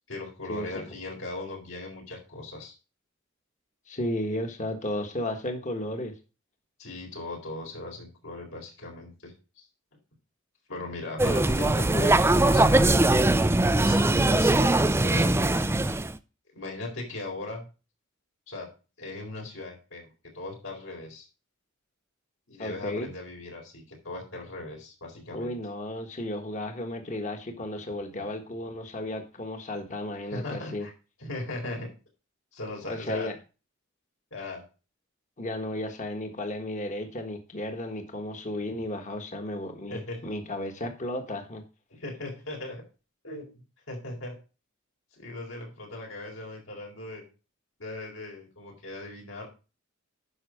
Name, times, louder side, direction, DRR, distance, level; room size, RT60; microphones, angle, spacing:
voice 1, 0.1-2.7 6.8-9.6 10.7-13.1 13.7-15.4 16.5-17.7 18.5-18.7 19.0-20.1 20.3-21.3 22.5-25.5 30.3-30.9 31.2-31.9 32.5-33.3 34.3-34.6 39.9-40.2 41.9-42.8 43.2-43.4 43.9-44.4 45.2-47.2 47.8-49.5, left 2 dB, 70° left, -1 dB, 4.3 m, -38 dB
voice 2, 3.9-6.2 22.6-23.1 25.3-30.9 32.9-33.3 35.4-41.6, left 1 dB, 35° left, 5 dB, 1.5 m, -34 dB
sound 1, 11.2-16.2, right 2 dB, 10° right, 0.4 m, -21 dB
10.0 x 6.1 x 5.1 m, 0.32 s
head